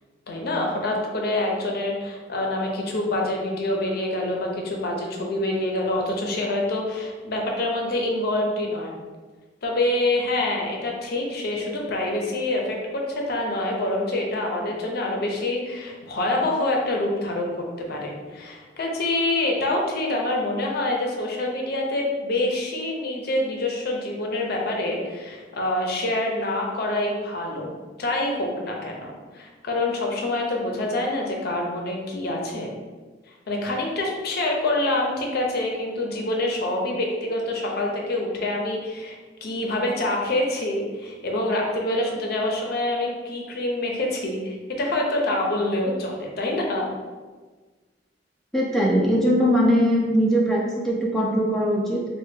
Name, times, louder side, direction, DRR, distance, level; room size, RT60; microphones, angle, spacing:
voice 1, 0.3-8.9 9.6-32.7 33.5-46.9, left 1 dB, 55° left, 0 dB, 0.5 m, -26 dB
voice 2, 48.5-52.1, equal, ahead, -4 dB, 0.4 m, -21 dB
3.2 x 2.2 x 3.2 m, 1.4 s
head